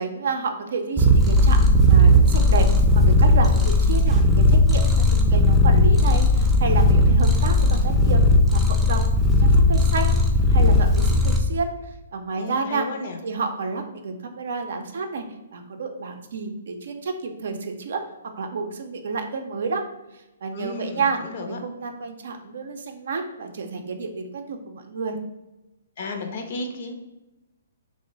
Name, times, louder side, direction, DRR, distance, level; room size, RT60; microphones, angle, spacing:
voice 1, 0.0-2.7 2.9-8.2 8.5-10.2 10.5-11.7 12.1-12.9 13.2-15.2 15.5-18.0 18.4-19.8 20.1-21.2 21.5-25.2, right 4 dB, 65° right, 5 dB, 0.5 m, -30 dB
Purr, 1.0-11.4, left 1 dB, 5° right, 0.4 m, -17 dB
voice 2, 12.4-13.2 20.5-21.6 26.0-26.9, left 3 dB, 55° left, 4 dB, 0.5 m, -33 dB
2.9 x 2.0 x 3.8 m, 0.99 s
hypercardioid pair, 140°, 0 cm